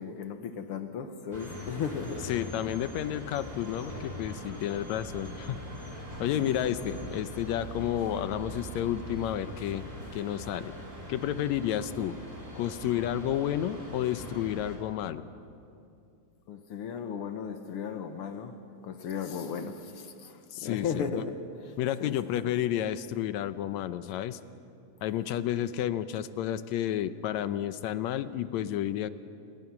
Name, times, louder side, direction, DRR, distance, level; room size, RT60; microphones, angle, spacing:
voice 1, 0.0-2.3 6.4-6.6 16.5-18.5 18.8-21.4 21.6-21.7 22.0-22.5, left 6 dB, 60° left, 8 dB, 1.7 m, -36 dB
sound 1, 1.3-14.8, equal, 15° right, 4.5 m, -43 dB
voice 2, 2.2-5.6 6.2-10.7 11.1-12.2 12.6-15.2 20.5-21.2 21.8-24.4 25.0-29.1, left 11 dB, 75° left, 12 dB, 2.0 m, -31 dB
sound 2, 4.7-9.8, right 2 dB, 75° right, 4.5 m, -45 dB
29.0 x 22.5 x 6.0 m, 2.6 s
omnidirectional pair, 3.4 m